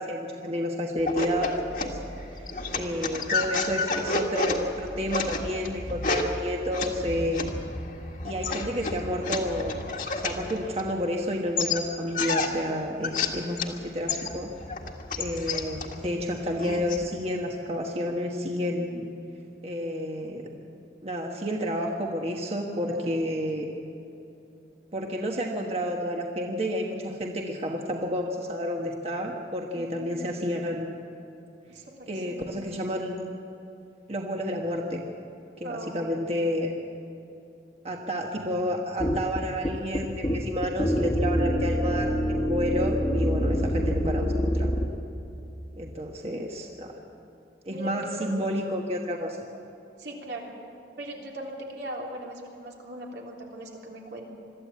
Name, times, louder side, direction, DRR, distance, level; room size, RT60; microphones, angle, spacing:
voice 1, 0.0-2.0 2.3-7.4 8.2-14.6 15.2-19.1 19.6-20.5 21.0-23.7 24.9-30.9 32.1-33.2 34.1-35.0 35.6-36.7 37.8-44.7 45.8-47.0 47.6-49.4, equal, 35° right, 1 dB, 1.3 m, -30 dB
sound 1, 1.0-11.2 11.6-13.8 14.1-17.1, left 3 dB, 50° left, 1.7 m, -31 dB
voice 2, 22.8-23.1 29.7-30.2 31.7-32.5 35.6-36.2 47.7-48.3 50.0-50.5 51.0-54.3, right 1 dB, 80° right, -1 dB, 3.3 m, -40 dB
sound 2, 39.0-44.9, equal, 25° left, 1.3 m, -26 dB
22.5 x 13.5 x 8.5 m, 2.8 s
head